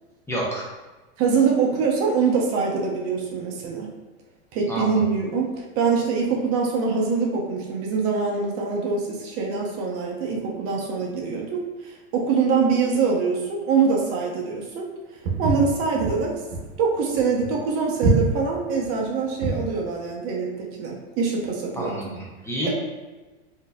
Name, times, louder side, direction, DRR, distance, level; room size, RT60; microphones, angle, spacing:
voice 1, 0.3-0.7 4.7-5.0 21.8-22.7, equal, 10° left, -5 dB, 0.6 m, -29 dB
voice 2, 1.2-3.9 4.5-14.9 15.4-16.3 16.8-21.9, right 5 dB, 45° right, -1 dB, 0.7 m, -24 dB
Walk footsteps, 15.2-19.7, right 2 dB, 70° right, 0.9 m, -25 dB
3.8 x 2.7 x 2.2 m, 1.2 s
hypercardioid pair, 115°, 32 cm